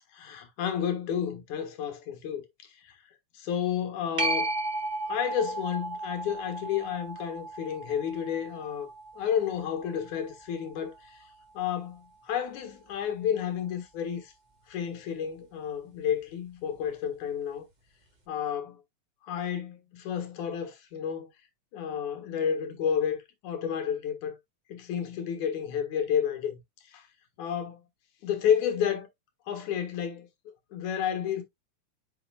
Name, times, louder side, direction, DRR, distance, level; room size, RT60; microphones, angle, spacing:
voice 1, 0.2-2.5 2.8-2.9 3.3-4.5 5.1-8.9 9.2-11.2 11.5-14.3 14.7-17.7 18.3-18.8 19.3-21.3 21.7-24.4 24.7-26.6 26.9-27.0 27.4-27.8 28.2-29.1 29.5-30.3 30.7-31.4, left 8 dB, 85° left, 2.9 m, -31 dB
sound 1, 4.2-11.3 16.9-17.0, right 2 dB, 30° right, 0.8 m, -35 dB
8.6 x 5.8 x 2.3 m
omnidirectional pair, 3.3 m